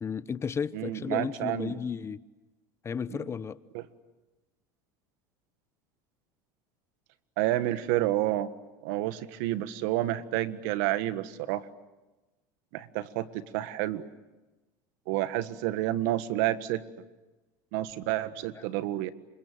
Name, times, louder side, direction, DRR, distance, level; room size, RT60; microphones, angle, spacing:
voice 1, 0.0-2.2 2.8-3.6 18.5-18.6, left 6 dB, 25° left, 0.9 m, -33 dB
voice 2, 0.7-1.8 3.1-3.3 3.7-3.8 7.4-8.5 8.8-11.6 12.7-14.1 15.1-16.8 17.7-19.1, right 14 dB, 70° right, 1.6 m, -29 dB
28.5 x 25.5 x 7.8 m
supercardioid pair, 100°, 10 cm